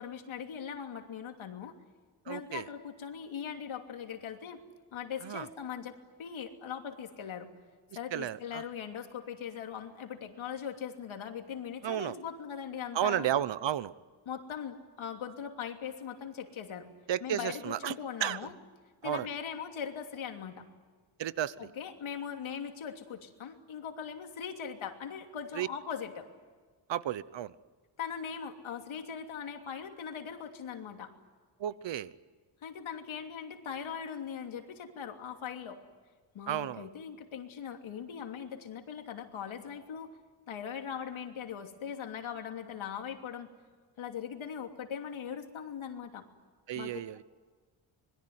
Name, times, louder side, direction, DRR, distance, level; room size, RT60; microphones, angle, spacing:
voice 1, 0.0-1.8 2.3-4.6 4.9-7.5 7.9-13.3 14.2-16.9 17.2-18.6 19.0-20.7 21.6-26.3 28.0-31.1 32.6-35.8 36.3-40.1 40.5-43.5 44.0-46.2 46.7-47.0, left 7 dB, 80° left, 4 dB, 3.1 m, -40 dB
voice 2, 2.3-2.7 5.2-5.5 8.1-8.6 11.8-12.1 12.9-13.9 17.1-17.9 18.2-18.4 19.0-19.3 21.2-21.5 25.6-25.7 26.9-27.5 31.6-32.1 36.5-36.9 46.7-47.2, right 11 dB, 65° right, 17 dB, 1.0 m, -32 dB
26.0 x 22.0 x 9.6 m, 1.5 s
wide cardioid pair, 140°, 47 cm